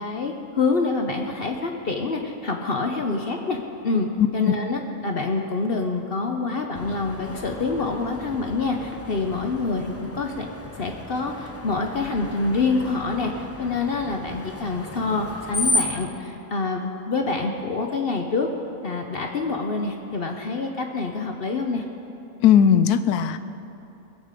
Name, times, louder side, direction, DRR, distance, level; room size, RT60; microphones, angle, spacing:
voice 1, 0.0-3.6 3.8-4.1 4.3-13.3 13.6-18.5 18.8-21.8, left 3 dB, 50° left, 3 dB, 0.8 m, -26 dB
voice 2, 4.2-4.5 22.4-23.4, left 8 dB, 90° left, 12 dB, 1.1 m, -18 dB
Screech, 6.7-16.1, left 1 dB, 20° left, 0.4 m, -33 dB
20.0 x 8.2 x 5.1 m, 2.9 s
omnidirectional pair, 1.6 m